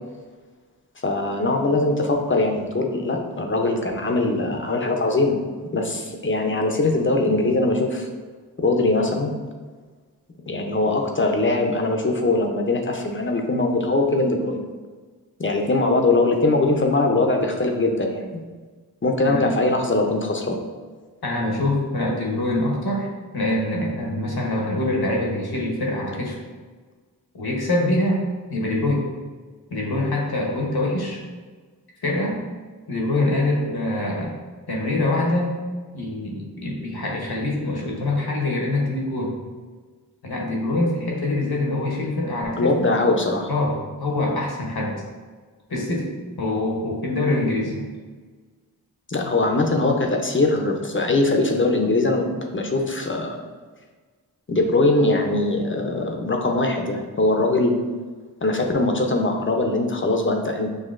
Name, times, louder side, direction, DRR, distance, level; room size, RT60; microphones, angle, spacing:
voice 1, 1.0-5.4 5.7-8.1 8.6-9.3 10.5-14.6 15.4-18.4 19.0-20.6 42.6-43.5 49.1-53.4 54.5-57.8 58.4-60.7, left 2 dB, 30° left, 3 dB, 0.6 m, -21 dB
voice 2, 21.2-23.1 23.3-26.4 27.3-28.2 28.5-29.0 29.7-31.2 32.0-32.4 32.9-34.3 34.7-35.5 35.9-39.3 40.2-42.9 43.5-45.0 45.7-46.1 46.4-47.8, left 1 dB, 75° left, -2 dB, 1.1 m, -24 dB
6.5 x 2.7 x 2.5 m, 1.4 s
wide cardioid pair, 50°, 38 cm